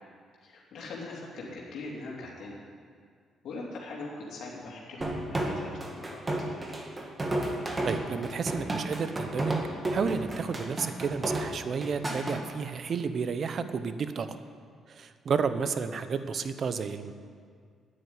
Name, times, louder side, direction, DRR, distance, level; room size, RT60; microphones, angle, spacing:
voice 1, 0.4-2.6 3.4-6.2, left 3 dB, 75° left, -4 dB, 2.8 m, -41 dB
sound 1, 5.0-12.4, right 1 dB, 25° right, 2.0 m, -32 dB
voice 2, 7.8-9.6 9.9-14.4 14.9-17.1, right 5 dB, 55° right, 11 dB, 0.8 m, -31 dB
10.0 x 9.3 x 9.6 m, 2.1 s
cardioid pair, 90°, 0 cm